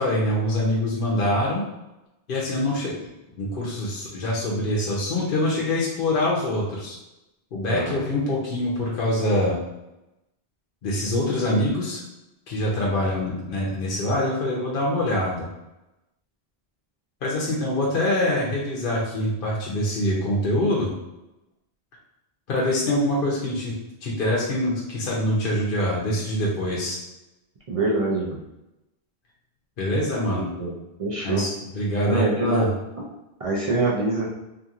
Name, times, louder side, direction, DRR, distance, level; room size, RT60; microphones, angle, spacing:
voice 1, 0.0-1.6 2.3-2.9 3.4-7.0 7.5-9.6 10.8-12.0 12.5-15.5 17.2-20.9 22.5-23.7 24.0-27.0 29.8-30.5 31.2-32.7, left 1 dB, 60° left, -4 dB, 0.8 m, -24 dB
voice 2, 7.7-8.0 27.7-28.4 30.3-30.7 31.0-31.4 32.0-32.7 33.4-34.3, right 2 dB, 50° right, -5 dB, 0.4 m, -24 dB
2.8 x 2.5 x 2.4 m, 0.95 s
omnidirectional pair, 1.0 m